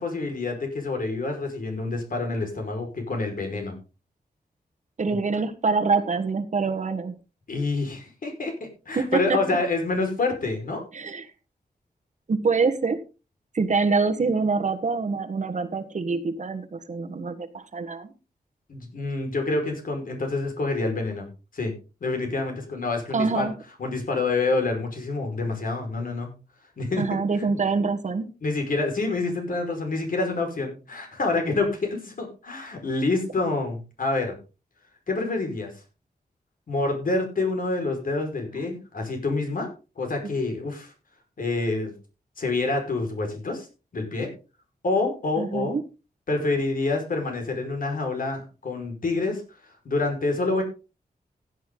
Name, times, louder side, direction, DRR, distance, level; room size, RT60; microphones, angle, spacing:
voice 1, 0.0-3.8 5.1-5.2 7.5-8.5 8.8-10.8 18.7-21.3 21.5-21.7 22.0-23.5 23.8-26.3 26.8-27.0 27.4-27.5 28.4-34.4 35.1-35.7 36.7-39.7 40.0-40.9 41.4-41.9 42.4-43.7 43.9-44.3 44.8-45.8 46.3-49.4 49.8-50.6, left 3 dB, 60° left, 3 dB, 5.2 m, -27 dB
voice 2, 5.0-7.1 8.9-9.6 10.9-11.3 12.3-13.0 13.5-18.1 23.1-23.5 27.0-28.3 38.5-38.7 40.2-40.3 45.4-45.8, right 4 dB, 50° right, 7 dB, 1.4 m, -25 dB
16.0 x 9.3 x 3.9 m, 0.32 s
wide cardioid pair, 135°, 16 cm